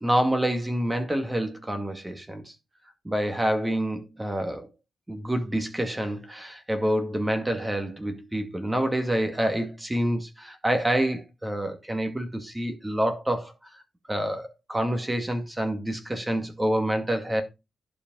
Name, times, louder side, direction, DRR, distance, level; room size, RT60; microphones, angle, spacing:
voice 1, 0.0-2.4 3.0-4.7 5.1-13.5 14.1-17.4, right 1 dB, 10° right, 2.1 m, -27 dB
11.0 x 5.1 x 5.4 m
wide cardioid pair, 120°, 0 cm